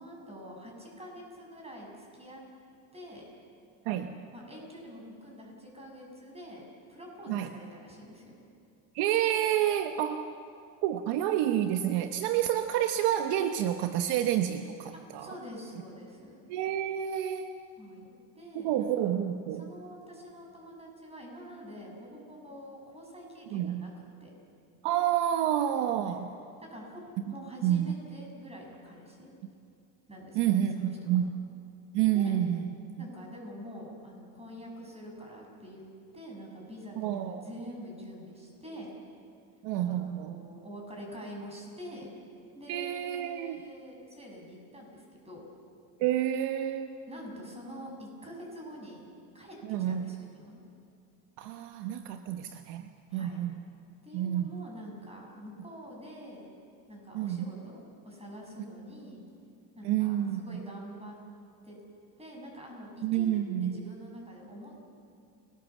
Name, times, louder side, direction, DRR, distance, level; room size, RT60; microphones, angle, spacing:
voice 1, 0.0-2.4 2.9-3.3 4.3-6.6 6.9-8.4 14.9-16.4 17.8-19.1 19.6-23.9 24.2-24.3 26.0-26.3 26.6-29.3 30.1-31.2 32.1-32.4 33.0-35.8 36.1-38.9 39.9-42.1 42.5-45.4 47.1-49.6 49.9-50.6 53.1-53.4 54.0-56.5 56.9-59.2 59.7-61.2 61.6-61.8 62.2-64.8, equal, 15° right, 0 dB, 7.7 m, -46 dB
voice 2, 8.9-10.3 10.8-15.3 16.5-17.5 18.5-19.7 23.5-23.9 24.8-26.3 27.6-27.9 30.3-31.3 31.9-32.9 37.0-37.4 39.6-40.4 42.7-43.6 46.0-46.9 49.7-50.0 51.4-53.6 54.1-54.6 57.1-57.5 59.8-60.6 63.0-63.8, right 11 dB, 60° right, 7 dB, 1.2 m, -29 dB
29.5 x 20.5 x 7.4 m, 2.4 s
supercardioid pair, 125°, 47 cm